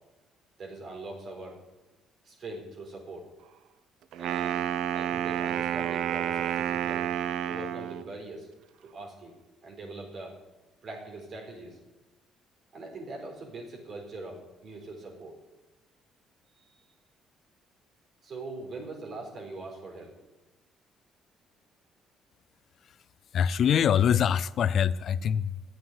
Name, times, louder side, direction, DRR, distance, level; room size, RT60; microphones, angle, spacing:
voice 1, 0.6-1.6 2.2-3.3 4.2-4.6 4.9-7.1 7.5-8.5 8.8-9.4 9.6-10.4 10.8-11.8 12.7-15.4 16.6-16.8 18.2-20.1, right 2 dB, 50° right, 4.2 m, -42 dB
Wind instrument woodwind instrument, 4.1-8.1, right 10 dB, 80° right, 0.6 m, -30 dB
voice 2, 23.3-25.6, left 8 dB, 55° left, 0.4 m, -24 dB
10.5 x 7.7 x 9.5 m
cardioid pair, 130°, 0 cm